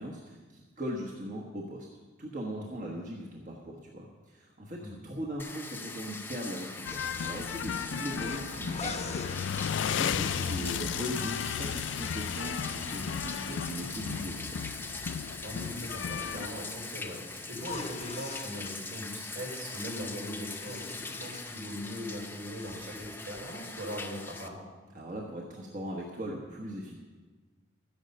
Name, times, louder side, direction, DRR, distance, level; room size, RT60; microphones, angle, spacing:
voice 1, 0.0-1.9 2.2-9.2 9.5-14.6 24.9-27.0, equal, 40° right, -1 dB, 1.2 m, -39 dB
Bathtub (filling or washing), 5.4-24.5, left 3 dB, 10° left, 0.6 m, -41 dB
sound 1, 6.8-16.5, left 7 dB, 75° left, 0.3 m, -34 dB
sound 2, 8.2-9.4 11.1-13.5 17.5-18.8 20.2-22.1 22.4-22.8, left 4 dB, 35° left, 1.0 m, -44 dB
voice 2, 15.4-24.6, equal, 80° right, -2 dB, 4.3 m, -40 dB
13.0 x 9.9 x 5.3 m, 1.3 s
head